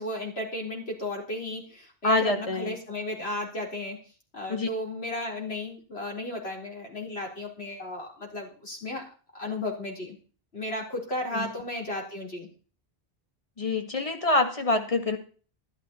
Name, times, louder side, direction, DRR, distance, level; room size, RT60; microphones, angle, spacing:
voice 1, 0.0-4.0 4.3-9.0 9.3-10.2 10.5-12.5, left 1 dB, 85° left, 0 dB, 4.5 m, -34 dB
voice 2, 2.0-2.8 4.5-4.7 11.3-11.5 13.6-15.2, left 2 dB, 35° left, 5 dB, 2.0 m, -25 dB
13.0 x 12.0 x 4.3 m, 0.37 s
omnidirectional pair, 1.0 m